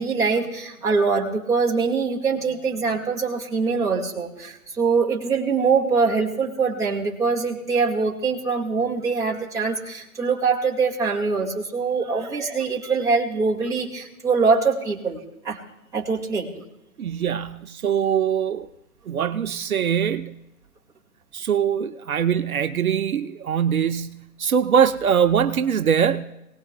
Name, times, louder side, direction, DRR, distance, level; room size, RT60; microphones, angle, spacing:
voice 1, 0.0-15.2 15.4-15.6 15.9-16.6, right 4 dB, 5° right, -4 dB, 2.0 m, -23 dB
voice 2, 17.0-18.7 19.1-20.3 21.3-26.2, right 8 dB, 70° right, 9 dB, 0.8 m, -22 dB
26.5 x 18.5 x 2.3 m, 0.89 s
figure-of-eight pair, 130°, 44 cm